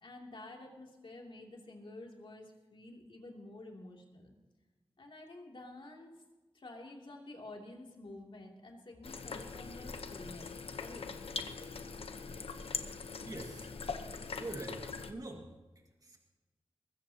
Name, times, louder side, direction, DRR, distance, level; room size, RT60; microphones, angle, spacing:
voice 1, 0.0-4.3 5.0-6.1 6.5-11.3, left 2 dB, 60° left, 0 dB, 2.9 m, -50 dB
sound 1, 9.0-15.1, left 4 dB, 80° left, 1.0 m, -42 dB
voice 2, 13.3-13.8 14.1-15.5 15.8-16.2, right 2 dB, 40° right, 1 dB, 2.1 m, -45 dB
21.0 x 15.0 x 2.9 m, 1.2 s
wide cardioid pair, 80°, 10 cm